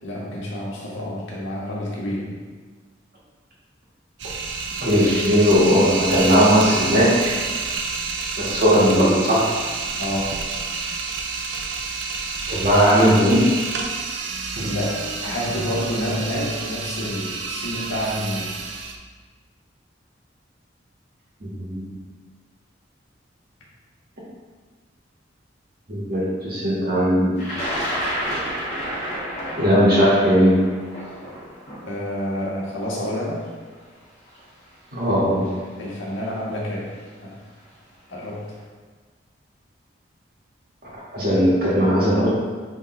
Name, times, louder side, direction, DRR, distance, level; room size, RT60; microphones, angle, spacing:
voice 1, 0.0-2.4 10.0-10.4 14.6-18.6 31.1-31.2 31.8-33.4 35.8-36.9 37.2-37.4 38.1-38.5, equal, 90° left, -5 dB, 1.6 m, -28 dB
sound 1, 4.2-18.9, right 4 dB, 65° right, 0.6 m, -29 dB
voice 2, 4.8-7.4 8.4-9.5 12.5-13.5 14.6-14.7 21.4-21.9 25.9-27.4 29.6-30.7 34.9-35.5 41.1-42.3, equal, 50° right, -6 dB, 1.8 m, -18 dB
Thunder, 27.4-33.4 34.3-34.4 35.5-35.8 36.1-36.6, equal, 35° left, 1.8 m, -30 dB
7.9 x 3.7 x 3.2 m, 1.4 s
head